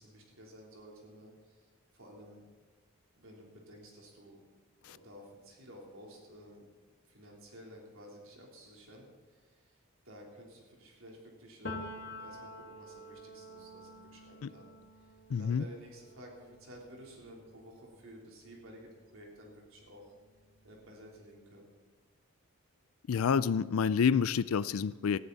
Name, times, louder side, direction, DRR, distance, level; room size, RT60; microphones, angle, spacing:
voice 1, 0.0-1.7 1.9-2.4 3.2-4.4 4.9-6.7 7.1-9.8 10.0-14.7 15.4-20.1 20.6-21.7, equal, 70° right, -1 dB, 3.6 m, -53 dB
Piano, 11.6-19.3 19.6-21.2, left 1 dB, 55° left, 1.8 m, -49 dB
voice 2, 15.3-15.6 23.1-25.2, left 6 dB, 80° left, 17 dB, 0.4 m, -28 dB
19.0 x 14.5 x 4.1 m, 1.3 s
head